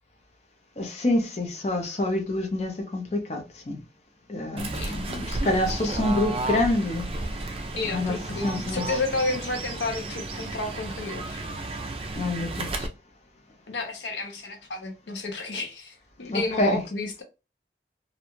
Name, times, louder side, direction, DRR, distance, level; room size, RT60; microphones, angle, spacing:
voice 1, 0.8-3.8 4.3-7.1 7.4-7.5 7.9-8.2 8.4-8.8 12.2-12.9 16.3-16.8, left 1 dB, 35° left, 0.5 m, -27 dB
Fowl / Bird, 4.6-12.9, right 2 dB, 30° right, 0.3 m, -33 dB
voice 2, 7.8-11.4 13.7-17.2, left 3 dB, 90° left, 0.7 m, -31 dB
2.5 x 2.2 x 2.9 m
head